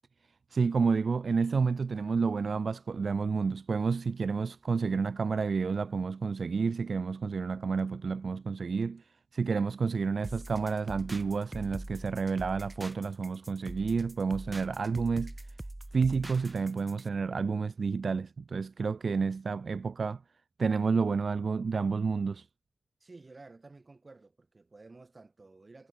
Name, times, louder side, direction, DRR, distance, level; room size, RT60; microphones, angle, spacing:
voice 1, 0.5-9.0 9.3-15.3 15.9-20.2 20.6-22.5, right 5 dB, 80° right, 0.4 m, -30 dB
sound 1, 10.2-17.1, right 1 dB, 25° right, 1.5 m, -43 dB
voice 2, 23.0-25.9, right 3 dB, 50° right, 3.2 m, -53 dB
cardioid pair, 50°, 0 cm